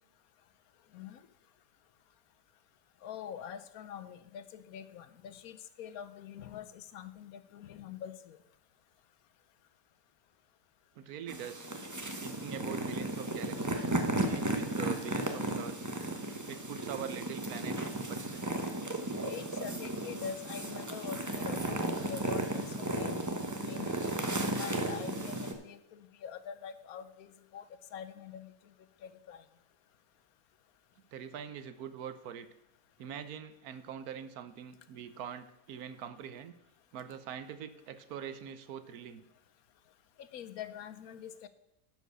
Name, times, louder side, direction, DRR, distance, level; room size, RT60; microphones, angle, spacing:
voice 1, 3.0-8.4 19.2-23.2 23.6-24.0 24.5-27.7 27.9-28.5 29.0-29.4 40.2-41.5, left 8 dB, 75° left, 12 dB, 1.1 m, -44 dB
voice 2, 11.0-11.7 12.2-13.9 14.2-15.9 16.5-18.6 31.1-32.5 33.0-36.5 36.9-39.2, right 8 dB, 85° right, 12 dB, 1.2 m, -43 dB
sound 1, 11.3-25.5, right 2 dB, 15° right, 0.7 m, -35 dB
11.0 x 5.1 x 6.6 m, 0.87 s
omnidirectional pair, 1.6 m